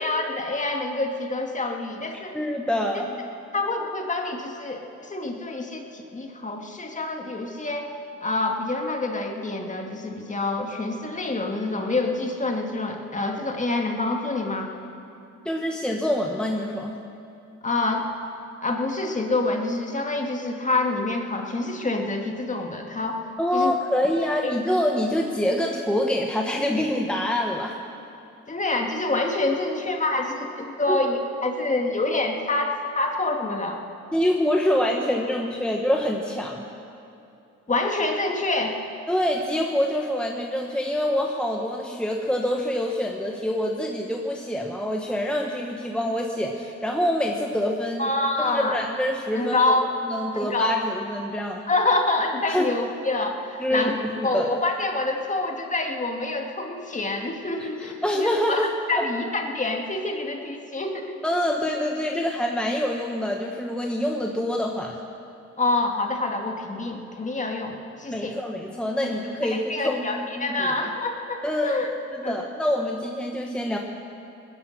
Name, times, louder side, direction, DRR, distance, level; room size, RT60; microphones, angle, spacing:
voice 1, 0.0-2.3 3.5-7.9 8.2-14.7 17.6-18.1 18.6-23.2 23.5-23.7 24.4-24.5 28.5-33.8 37.7-38.8 48.0-48.8 49.3-49.9 50.3-50.8 51.7-61.2 65.6-68.4 69.0-69.1 69.5-71.9 72.2-72.4, left 2 dB, 25° left, 2 dB, 2.0 m, -27 dB
voice 2, 2.3-3.1 15.4-17.0 23.4-27.7 30.9-31.0 34.1-36.7 39.1-48.1 48.4-49.7 50.1-51.6 52.5-52.7 53.6-54.6 58.0-58.7 59.0-59.1 61.2-65.0 68.1-70.5 71.4-71.8 72.1-73.8, left 1 dB, 5° left, 1 dB, 1.1 m, -26 dB
20.0 x 10.5 x 6.5 m, 2.7 s
cardioid pair, 90°, 30 cm